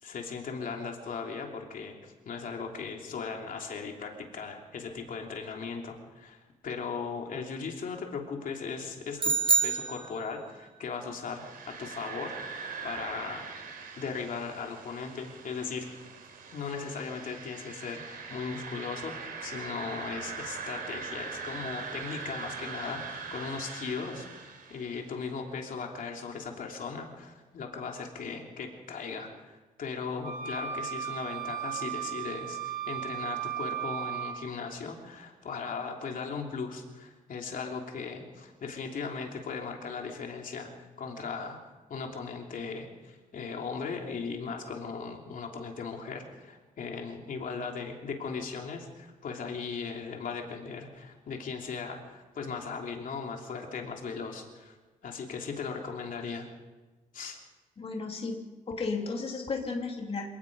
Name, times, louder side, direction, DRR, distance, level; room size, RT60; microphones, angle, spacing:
voice 1, 0.0-6.4 6.6-9.4 9.6-13.4 14.0-15.9 16.5-41.6 41.9-54.8 55.0-56.5 57.1-57.4, left 5 dB, 70° left, 2 dB, 3.0 m, -38 dB
sound 1, 9.2-10.6, right 5 dB, 35° right, 1.4 m, -27 dB
sound 2, 11.2-25.1, right 5 dB, 85° right, 4.3 m, -42 dB
sound 3, 30.2-34.4, right 10 dB, 65° right, 2.3 m, -35 dB
voice 2, 57.8-58.4 58.7-60.2, left 4 dB, 40° left, 1 dB, 2.8 m, -33 dB
27.5 x 18.5 x 5.4 m, 1.2 s
wide cardioid pair, 150°, 15 cm